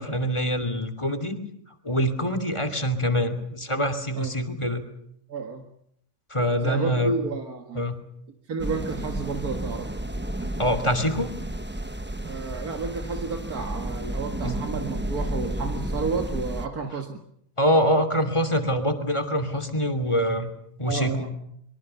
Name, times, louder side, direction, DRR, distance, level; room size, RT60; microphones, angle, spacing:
voice 1, 0.0-1.4 1.8-4.8 6.3-7.1 7.7-8.0 10.6-11.3 14.4-14.6 17.6-20.5 20.8-21.3, equal, 20° left, 8 dB, 2.9 m, -25 dB
voice 2, 5.3-5.6 6.6-7.9 8.5-9.9 12.2-17.2 20.9-21.3, right 4 dB, 90° right, 5 dB, 2.3 m, -31 dB
sound 1, 8.6-16.7, right 1 dB, 10° right, 0.9 m, -32 dB
25.0 x 23.5 x 7.0 m, 0.71 s
omnidirectional pair, 1.5 m